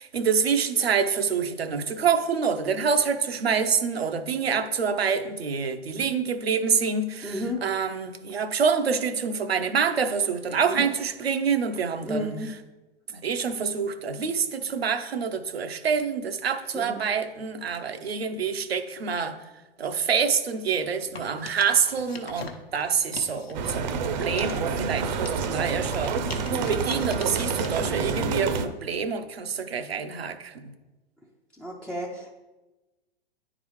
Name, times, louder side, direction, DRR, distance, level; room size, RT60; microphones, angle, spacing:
voice 1, 0.0-12.3 13.1-19.4 19.8-26.2 26.5-30.7, right 6 dB, 85° right, 8 dB, 0.7 m, -26 dB
voice 2, 7.2-7.6 10.7-10.9 12.0-12.5 16.7-17.0 31.6-32.3, left 1 dB, ahead, -4 dB, 0.3 m, -32 dB
sound 1, 21.0-23.7 24.0-28.3, left 5 dB, 85° left, 0.9 m, -42 dB
sound 2, 23.5-28.7, right 5 dB, 50° right, 0.6 m, -28 dB
9.7 x 3.9 x 3.1 m, 1.1 s
hypercardioid pair, 110°, 30 cm